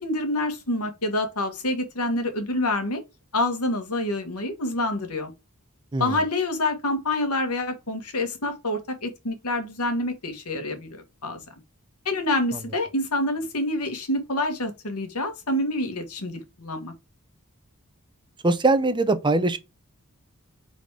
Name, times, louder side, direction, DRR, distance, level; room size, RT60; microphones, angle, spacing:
voice 1, 0.0-3.0 3.3-5.3 6.0-11.4 12.0-16.9, left 1 dB, 85° left, 1.7 m, -27 dB
voice 2, 18.4-19.6, right 2 dB, 20° right, 0.6 m, -21 dB
5.0 x 4.1 x 4.7 m
head